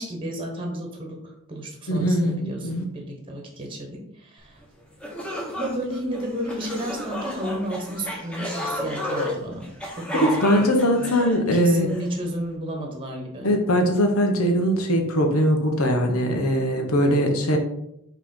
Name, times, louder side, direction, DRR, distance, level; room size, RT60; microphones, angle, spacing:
voice 1, 0.0-4.6 5.5-11.0 11.6-13.5, right 1 dB, 25° right, 1 dB, 1.2 m, -32 dB
voice 2, 1.9-2.9 10.1-11.9 13.4-17.6, equal, 85° left, 3 dB, 1.2 m, -21 dB
sound 1, 4.6-4.7 5.0-12.1, left 1 dB, 5° left, 1.2 m, -32 dB
5.6 x 3.3 x 5.6 m, 0.78 s
head